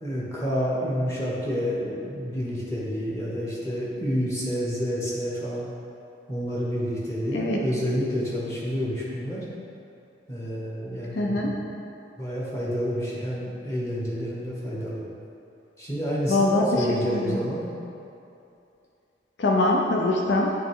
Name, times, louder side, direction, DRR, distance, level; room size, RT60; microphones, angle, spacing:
voice 1, 0.0-5.7 6.3-9.5 10.3-11.7 12.2-15.0 15.8-17.7, equal, 15° left, -7 dB, 1.1 m, -29 dB
voice 2, 11.2-11.5 16.3-16.8 17.1-17.4 19.4-20.5, left 2 dB, 75° left, -1 dB, 0.5 m, -23 dB
8.5 x 3.4 x 3.6 m, 2.7 s
head